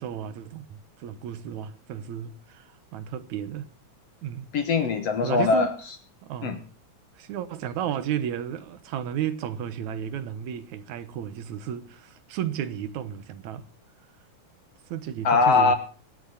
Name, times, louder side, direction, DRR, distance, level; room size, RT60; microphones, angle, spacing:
voice 1, 0.0-3.7 4.2-4.5 5.2-5.8 6.2-6.6 7.2-13.7 14.9-15.7, right 9 dB, 75° right, 2.5 m, -33 dB
voice 2, 4.5-5.7 6.4-6.6 15.2-15.7, left 4 dB, 60° left, 2.2 m, -21 dB
25.0 x 9.3 x 4.2 m
omnidirectional pair, 3.4 m